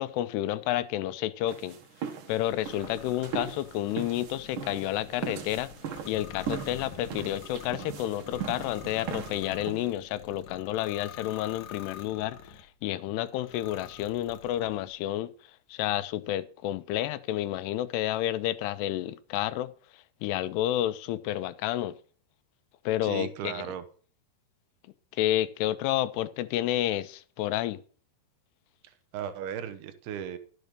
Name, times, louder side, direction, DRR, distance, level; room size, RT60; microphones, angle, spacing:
voice 1, 0.0-1.8 2.3-5.7 6.1-15.3 15.7-19.7 20.2-21.9 22.9-23.6 25.2-27.8, left 13 dB, 85° left, 2.8 m, -30 dB
sound 1, 1.5-9.9, right 7 dB, 60° right, 2.9 m, -39 dB
sound 2, 2.4-12.7 13.3-14.9, left 7 dB, 65° left, 1.9 m, -47 dB
voice 2, 23.0-23.8 28.8-30.4, right 9 dB, 75° right, 3.0 m, -36 dB
12.0 x 7.8 x 6.7 m
omnidirectional pair, 4.7 m